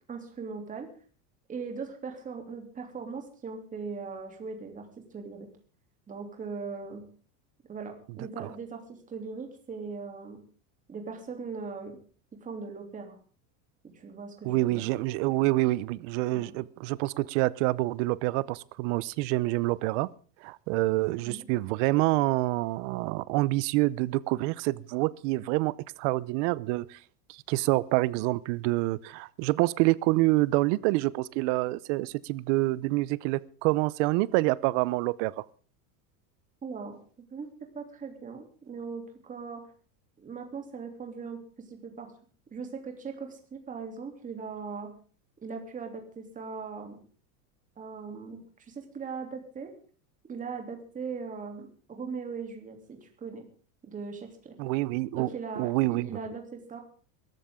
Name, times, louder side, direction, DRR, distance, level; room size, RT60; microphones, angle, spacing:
voice 1, 0.1-0.9 1.5-4.9 5.1-5.5 6.1-7.0 7.7-8.8 9.1-10.4 10.9-12.0 12.4-13.2 13.9-14.8 16.3-16.5 21.2-21.5 36.6-37.0 37.3-39.6 40.2-42.1 42.5-44.9 45.4-47.0 47.8-49.7 50.3-53.5 53.9-54.5 55.1-56.8, right 5 dB, 20° right, 3.1 m, -39 dB
voice 2, 14.4-20.1 20.4-27.0 27.3-35.4 54.6-55.3 55.6-56.1, right 20 dB, 55° right, 0.8 m, -27 dB
22.5 x 13.5 x 3.7 m
supercardioid pair, 160°, 44 cm